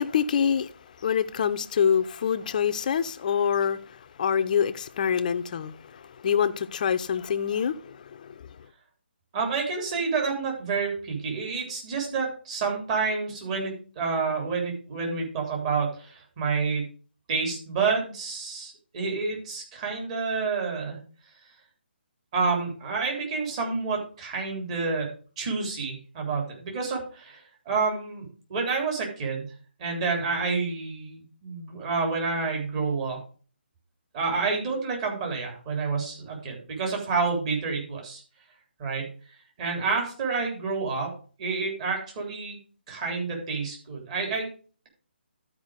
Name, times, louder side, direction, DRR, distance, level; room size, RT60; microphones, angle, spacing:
voice 1, 0.0-8.6, left 7 dB, 45° left, 0.7 m, -26 dB
voice 2, 9.3-16.8 17.3-21.0 22.3-25.1 25.4-29.5 29.8-33.2 34.1-38.2 38.8-39.0 39.6-41.1 41.4-42.6 42.9-44.5, right 4 dB, 35° right, 3.5 m, -29 dB
12.5 x 5.0 x 5.0 m
figure-of-eight pair, 155°, 6 cm